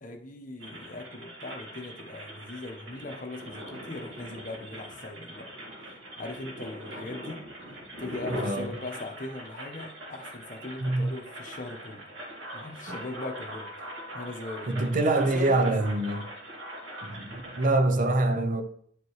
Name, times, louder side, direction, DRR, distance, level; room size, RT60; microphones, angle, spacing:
voice 1, 0.0-5.5 6.2-7.4 8.0-12.0 12.5-13.7 14.1-15.7, left 2 dB, 45° left, 1.0 m, -40 dB
sound 1, 0.6-17.7, equal, 75° right, 2.1 m, -42 dB
voice 2, 8.3-8.7 10.8-11.1 12.9-13.0 14.7-16.3 17.0-18.6, right 2 dB, 45° right, 0.6 m, -25 dB
10.5 x 5.2 x 3.1 m
head